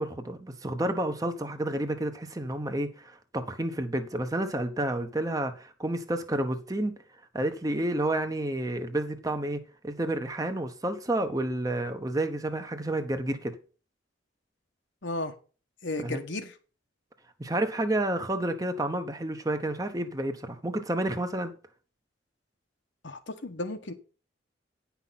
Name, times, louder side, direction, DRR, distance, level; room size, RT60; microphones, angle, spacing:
voice 1, 0.0-6.9 7.3-13.5 16.0-16.2 17.4-21.5, right 1 dB, 20° right, 0.9 m, -30 dB
voice 2, 15.0-15.3 15.8-16.5 23.0-23.9, left 2 dB, 75° left, 1.3 m, -34 dB
9.7 x 5.8 x 5.8 m
head